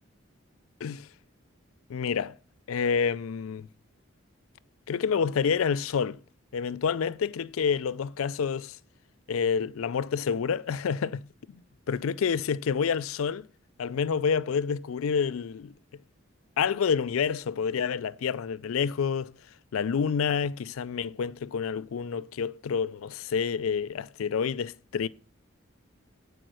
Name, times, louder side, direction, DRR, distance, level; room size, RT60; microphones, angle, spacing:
voice 1, 1.9-2.4 2.7-3.7 4.9-6.2 6.5-8.8 9.3-11.2 11.9-13.5 13.8-15.7 16.6-19.3 19.7-25.1, left 6 dB, 85° left, 0.4 m, -28 dB
8.9 x 4.8 x 6.2 m
head